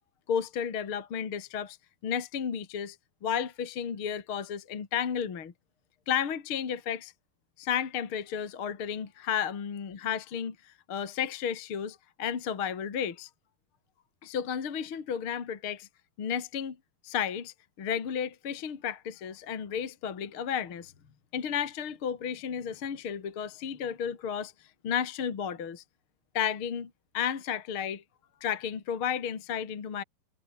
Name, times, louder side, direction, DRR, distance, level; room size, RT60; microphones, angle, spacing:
voice 1, 0.3-1.8 2.0-3.0 3.2-5.5 6.1-7.1 7.6-13.3 14.2-15.9 16.2-16.8 17.0-20.9 21.3-24.5 24.8-25.8 26.3-28.0 28.4-30.0, left 8 dB, 40° left, 2.7 m, -33 dB
omnidirectional pair, 4.8 m